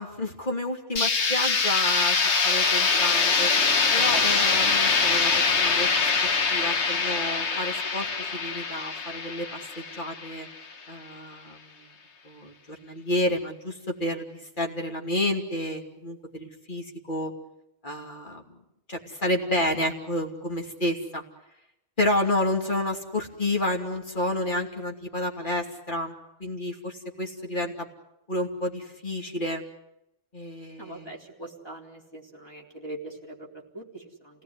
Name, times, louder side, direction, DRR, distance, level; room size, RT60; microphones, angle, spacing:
voice 1, 0.0-3.5 3.9-10.5 10.9-11.8 12.2-14.3 14.6-17.3 17.8-18.4 18.9-21.2 22.0-26.1 26.4-27.9 28.3-29.6 30.3-31.1, left 1 dB, 45° left, 1 dB, 3.0 m, -30 dB
sound 1, 1.0-10.7, left 4 dB, 75° left, 1.6 m, -24 dB
voice 2, 30.8-34.4, right 1 dB, 20° left, 0 dB, 3.8 m, -42 dB
28.0 x 18.0 x 9.7 m, 0.88 s
omnidirectional pair, 1.2 m